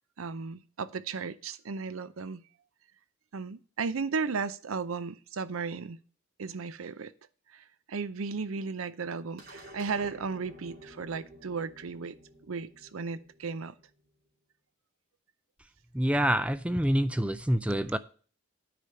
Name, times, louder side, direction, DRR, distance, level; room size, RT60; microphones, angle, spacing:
voice 1, 0.2-2.4 3.3-6.0 6.4-7.1 7.5-12.2 12.5-13.7, right 5 dB, 85° right, 0.6 m, -35 dB
sound 1, 9.4-14.0, right 1 dB, 50° right, 2.8 m, -51 dB
voice 2, 15.9-18.0, equal, 5° right, 0.4 m, -26 dB
9.6 x 5.0 x 6.9 m
head